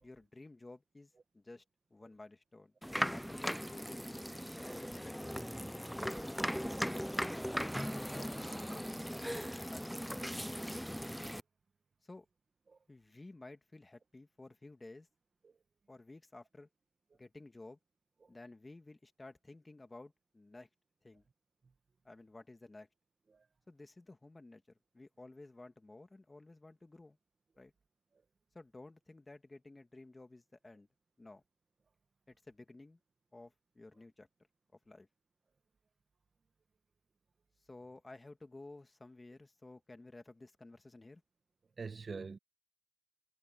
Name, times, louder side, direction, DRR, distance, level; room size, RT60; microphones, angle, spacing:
voice 1, 0.0-1.6 1.9-2.7 3.0-4.2 4.6-6.5 7.5-9.9 12.0-12.3 12.9-15.1 15.9-16.7 17.1-17.8 18.3-20.7 21.0-21.3 22.0-22.9 23.7-24.6 24.9-27.2 27.6-27.7 28.5-30.9 31.2-31.4 32.3-33.0 33.3-34.3 34.9-35.1 37.6-41.2, left 2 dB, 20° left, 2.3 m, -54 dB
sound 1, 2.8-11.4, equal, ahead, 0.4 m, -38 dB
voice 2, 41.8-42.4, right 4 dB, 35° right, 1.5 m, -45 dB
cardioid pair, 90°, 0 cm